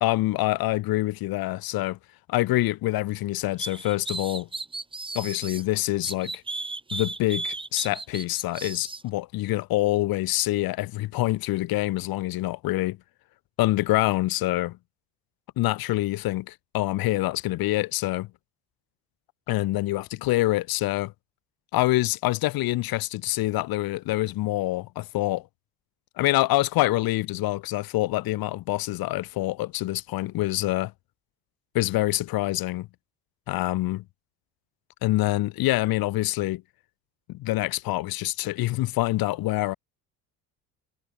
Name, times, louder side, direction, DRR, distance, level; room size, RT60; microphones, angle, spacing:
voice 1, 0.0-2.0 2.3-4.5 5.2-6.4 6.9-13.0 13.6-14.8 15.6-18.3 19.5-21.1 21.7-25.5 26.2-30.9 31.7-32.9 33.5-34.0 35.0-36.6 37.3-39.8, left 17 dB, 70° left, 1.7 m, -26 dB
sound 1, 3.6-5.6 6.0-9.0, right 3 dB, 15° right, 1.4 m, -35 dB
supercardioid pair, 85°, 38 cm